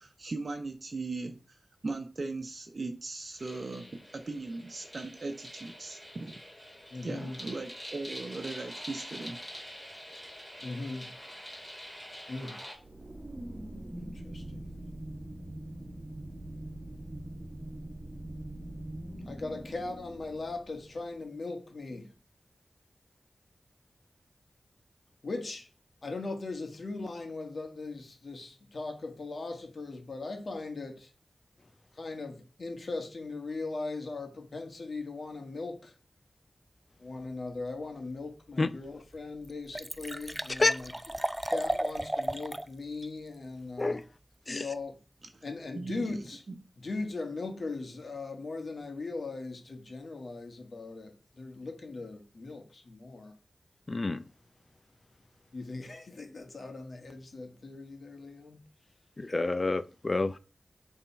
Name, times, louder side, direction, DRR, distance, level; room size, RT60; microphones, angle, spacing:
voice 1, 0.0-1.6 1.8-6.3 7.0-9.7 45.3-45.4 45.7-46.2 46.5-46.6, right 3 dB, 60° right, 0.9 m, -38 dB
sound 1, 3.4-12.8, equal, 10° left, 2.8 m, -46 dB
voice 2, 6.9-7.4 10.6-11.1 12.3-12.6 14.0-14.7 19.3-22.1 25.2-25.7 26.0-31.1 32.0-35.9 37.0-40.9 41.5-44.0 44.5-45.0 45.4-46.4 46.8-53.3 55.5-58.6, left 3 dB, 70° left, 1.6 m, -39 dB
sound 2, 12.8-21.0, right 1 dB, 35° right, 1.4 m, -43 dB
Liquid, 38.6-38.7 39.1-39.2 39.4-42.7 43.0-43.1, right 1 dB, 15° right, 0.5 m, -34 dB
voice 3, 53.9-54.2 59.2-60.4, left 3 dB, 45° left, 0.5 m, -28 dB
7.2 x 3.7 x 4.6 m
cardioid pair, 55°, 0 cm